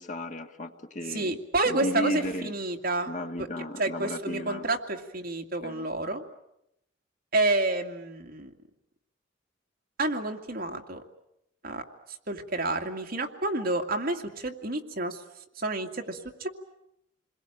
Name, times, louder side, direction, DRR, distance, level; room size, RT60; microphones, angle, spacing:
voice 1, 0.0-1.4 1.6-2.5 3.1-4.7 5.6-5.9, left 1 dB, 40° left, 6 dB, 1.7 m, -34 dB
voice 2, 1.1-3.1 3.4-3.5 3.8-6.2 7.3-8.5 10.0-11.0 11.6-11.8 12.3-15.2 15.6-16.5, right 2 dB, 50° right, 3 dB, 2.3 m, -29 dB
28.5 x 21.5 x 9.0 m, 0.83 s
head